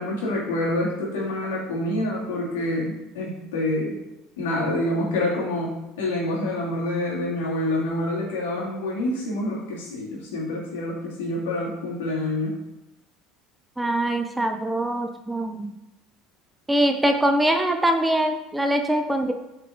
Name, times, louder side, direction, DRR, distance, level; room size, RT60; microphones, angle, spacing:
voice 1, 0.0-4.0 4.4-12.6, left 1 dB, 70° left, -4 dB, 2.5 m, -27 dB
voice 2, 13.8-15.7 16.7-19.3, right 1 dB, 10° right, 5 dB, 0.8 m, -23 dB
7.7 x 4.9 x 3.8 m, 0.93 s
figure-of-eight pair, 65°, 0 cm